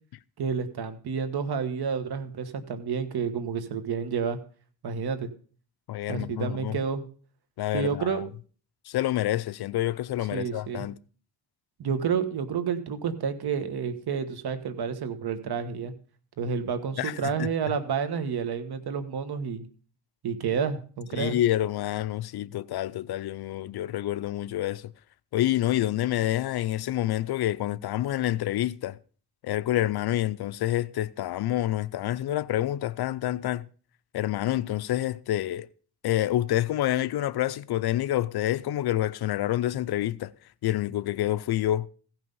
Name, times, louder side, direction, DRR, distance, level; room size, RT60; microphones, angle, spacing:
voice 1, 0.4-4.4 4.8-5.3 6.1-7.0 7.7-8.2 10.3-10.8 11.8-15.9 16.4-19.7 20.2-21.4, right 6 dB, 65° right, 1.4 m, -30 dB
voice 2, 5.9-6.8 7.6-8.2 8.9-11.0 17.0-17.5 21.1-24.9 25.3-29.0 29.4-33.7 34.1-35.7 36.0-40.3 40.6-41.9, left 13 dB, 65° left, 0.5 m, -28 dB
15.5 x 6.0 x 5.4 m
cardioid pair, 120°, 41 cm